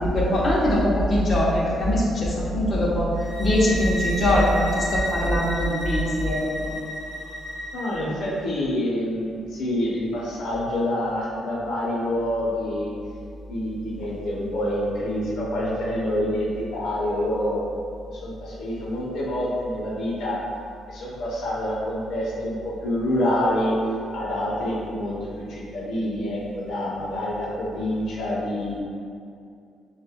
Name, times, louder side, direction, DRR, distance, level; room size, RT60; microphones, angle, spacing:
voice 1, 0.0-3.1 3.4-6.7, equal, 40° left, -6 dB, 1.0 m, -22 dB
sound 1, 3.1-8.0, equal, 35° right, 1.2 m, -32 dB
voice 2, 7.7-12.9 13.5-17.6 18.1-20.4 20.9-23.7 24.1-28.8, left 1 dB, 75° left, -6 dB, 0.9 m, -27 dB
6.7 x 2.5 x 2.3 m, 2.5 s
cardioid pair, 90°, 0 cm